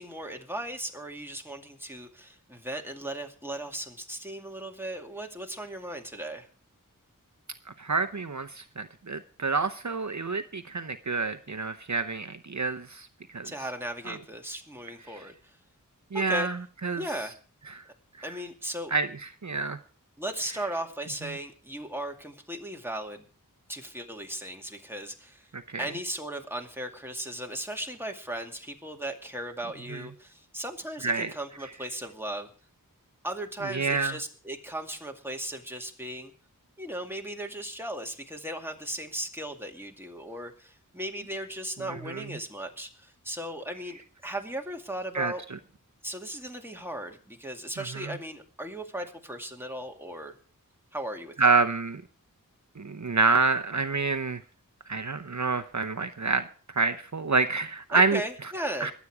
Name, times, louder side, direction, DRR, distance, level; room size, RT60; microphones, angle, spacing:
voice 1, 0.0-6.5 13.4-15.6 16.1-16.5 17.0-17.3 18.2-18.9 20.2-23.2 23.7-25.5 25.8-32.5 33.2-36.3 36.8-45.4 46.0-50.3 50.9-51.5 57.9-58.9, right 1 dB, 5° right, 2 dB, 2.3 m, -37 dB
voice 2, 7.8-13.1 13.3-13.5 14.1-14.2 16.1-16.6 16.8-17.0 17.8-17.9 18.2-18.3 18.9-19.1 19.4-19.8 25.5-25.6 29.9-30.0 31.0-31.3 33.7-34.1 42.1-42.2 45.1-45.3 47.9-48.1 51.4-52.0 52.8-54.4 54.9-56.4 56.8-58.2 58.8-58.9, right 4 dB, 55° right, 10 dB, 0.8 m, -27 dB
22.0 x 8.4 x 4.8 m, 0.41 s
wide cardioid pair, 45°, 34 cm